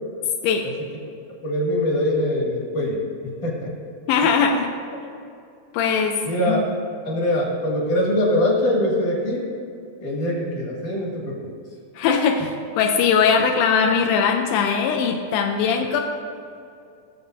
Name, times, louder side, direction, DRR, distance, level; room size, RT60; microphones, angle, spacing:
voice 1, 1.4-3.0 3.4-3.7 6.2-6.6 7.1-9.4 10.0-11.5, left 1 dB, 60° left, -4 dB, 3.6 m, -23 dB
voice 2, 4.1-4.8 5.7-6.6 12.0-16.0, left 6 dB, 85° left, 2 dB, 2.5 m, -20 dB
20.5 x 7.0 x 2.7 m, 2.4 s
omnidirectional pair, 4.1 m